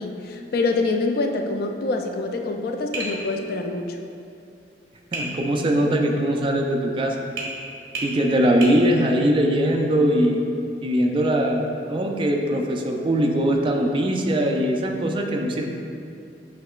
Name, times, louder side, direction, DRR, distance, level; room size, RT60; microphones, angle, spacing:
voice 1, 0.0-4.0, left 3 dB, 55° left, 5 dB, 0.3 m, -25 dB
Tap, 2.9-3.2 5.1-5.3 7.4-7.5 7.9-8.1 8.6-8.8, right 3 dB, 55° right, 1.0 m, -29 dB
voice 2, 5.1-7.2 8.0-10.4 10.8-15.6, right 1 dB, 30° right, 2 dB, 0.3 m, -21 dB
7.3 x 3.0 x 2.3 m, 2.5 s
head